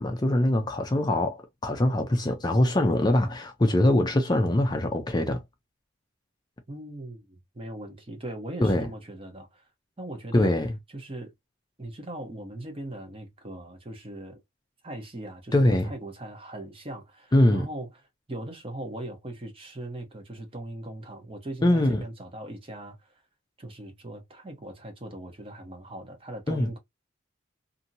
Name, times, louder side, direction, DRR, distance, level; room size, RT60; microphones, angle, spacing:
voice 1, 0.0-5.4 8.6-8.9 10.3-10.7 15.5-15.9 17.3-17.7 21.6-22.0 26.5-26.7, left 1 dB, 20° left, 0.4 m, -23 dB
voice 2, 6.7-9.6 10.0-10.5 10.9-11.3 11.8-14.4 14.8-17.9 18.3-23.0 23.6-26.8, right 1 dB, 30° right, 0.9 m, -39 dB
2.8 x 2.6 x 2.6 m
head